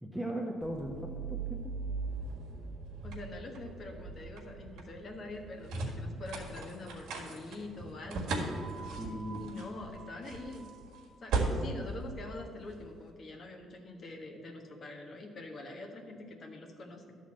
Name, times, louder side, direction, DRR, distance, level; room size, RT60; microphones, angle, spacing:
voice 1, 0.0-1.8 9.0-9.4, right 1 dB, ahead, -2 dB, 0.9 m, -38 dB
sound 1, 0.6-13.0, right 3 dB, 80° right, 1.6 m, -38 dB
voice 2, 3.0-8.4 9.4-10.7 11.2-17.2, left 2 dB, 45° left, 3 dB, 1.2 m, -45 dB
11.0 x 4.1 x 7.4 m, 2.2 s
cardioid pair, 100°, 0 cm